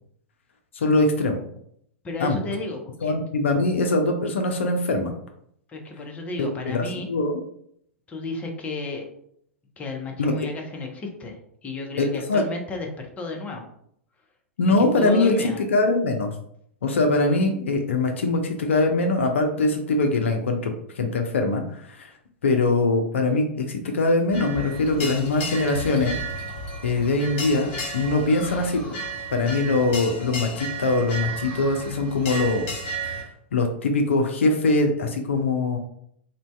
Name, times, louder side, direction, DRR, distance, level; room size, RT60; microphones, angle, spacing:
voice 1, 0.7-1.4 2.2-2.4 3.0-5.1 6.4-7.4 10.2-10.3 12.0-12.4 14.6-16.3 16.8-22.1 22.4-26.2 26.8-27.7 27.9-28.9 29.3-32.6 33.0-35.8, left 2 dB, 70° left, 4 dB, 0.5 m, -22 dB
voice 2, 2.0-3.1 5.7-7.1 8.1-9.1 9.8-11.4 11.6-13.6 14.7-15.6, left 3 dB, 20° left, 2 dB, 0.6 m, -33 dB
sound 1, 24.3-33.2, right 1 dB, 50° left, 1.2 m, -33 dB
2.6 x 2.2 x 3.2 m, 0.68 s
figure-of-eight pair, 100°, 7 cm